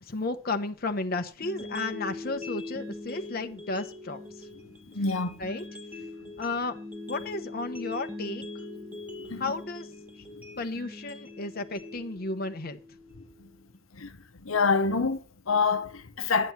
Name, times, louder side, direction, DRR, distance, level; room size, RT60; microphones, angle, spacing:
voice 1, 0.0-4.2 5.4-5.6 6.4-6.8 7.1-8.4 9.4-9.9 10.6-12.8, left 3 dB, 45° left, 1.0 m, -33 dB
sound 1, 1.4-13.4, left 2 dB, 10° right, 1.7 m, -42 dB
voice 2, 4.9-5.4 9.3-9.4 10.4-10.5 13.4-13.5 13.9-14.2 14.4-16.5, left 4 dB, 80° left, 1.0 m, -27 dB
9.9 x 8.6 x 5.9 m
head